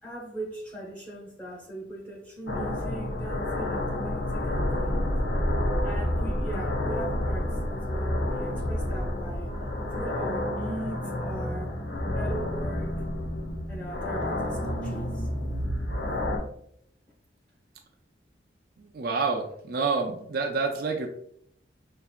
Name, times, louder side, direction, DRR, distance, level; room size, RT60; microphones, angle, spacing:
voice 1, 0.0-5.1 5.8-9.5 9.9-11.8 12.1-12.9 13.7-15.3, right 1 dB, 5° left, -3 dB, 1.0 m, -39 dB
sound 1, 2.5-16.4, left 1 dB, 65° left, 0.8 m, -29 dB
voice 2, 18.8-21.1, right 4 dB, 50° right, 3 dB, 0.4 m, -28 dB
5.5 x 2.6 x 2.3 m, 0.70 s
head